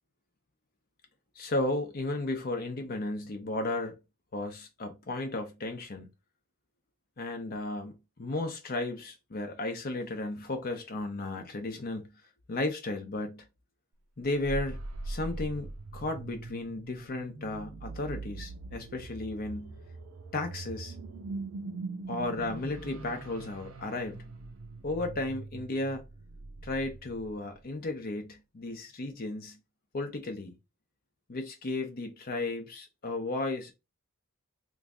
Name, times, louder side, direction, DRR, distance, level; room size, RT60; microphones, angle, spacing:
voice 1, 1.3-4.0 4.3-6.1 7.2-12.1 12.5-13.5 14.2-14.8 15.0-19.8 20.3-20.9 22.1-24.3 24.8-26.0 26.6-29.6 29.9-30.6 31.3-33.7, left 2 dB, 45° left, 0.6 m, -34 dB
sound 1, 14.2-27.7, right 3 dB, 85° right, 0.6 m, -42 dB
3.1 x 2.5 x 3.5 m
head